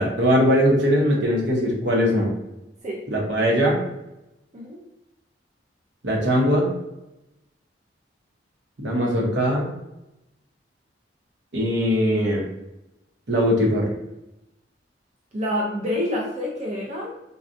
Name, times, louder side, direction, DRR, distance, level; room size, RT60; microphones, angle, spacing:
voice 1, 0.0-2.3 3.1-3.9 6.0-6.7 8.8-9.7 11.5-12.5 13.3-13.9, equal, 75° right, -1 dB, 0.9 m, -20 dB
voice 2, 15.3-17.1, left 1 dB, 40° right, -2 dB, 0.5 m, -27 dB
4.0 x 2.3 x 2.5 m, 0.93 s
head